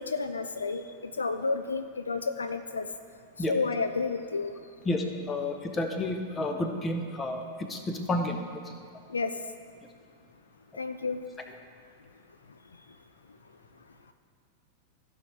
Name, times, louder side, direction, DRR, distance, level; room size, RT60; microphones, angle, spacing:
voice 1, 0.0-2.9 3.5-4.5 9.1-9.3 10.8-11.2, left 4 dB, 75° left, 9 dB, 0.3 m, -31 dB
voice 2, 4.8-8.4 8.7-8.8, left 2 dB, 20° left, 5 dB, 0.9 m, -31 dB
15.5 x 5.3 x 3.2 m, 2.1 s
figure-of-eight pair, 90°, 0 cm